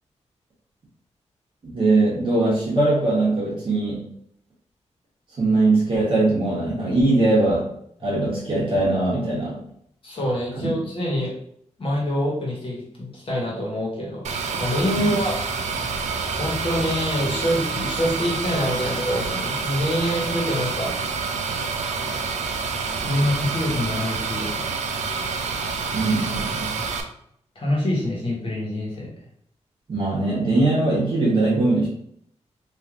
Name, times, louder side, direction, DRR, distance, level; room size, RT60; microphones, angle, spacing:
voice 1, 1.6-4.1 5.4-7.7 8.0-9.6 10.6-10.7 14.9-15.1 25.9-26.7 29.9-31.9, right 2 dB, 45° right, -7 dB, 1.0 m, -21 dB
voice 2, 10.0-11.3 11.8-15.4 16.4-20.9 23.0-24.6 27.5-29.1, left 1 dB, 50° left, -5 dB, 1.2 m, -25 dB
sound 1, 14.2-27.0, right 5 dB, 80° right, 0.4 m, -28 dB
3.2 x 2.5 x 2.4 m, 0.69 s
wide cardioid pair, 165°, 12 cm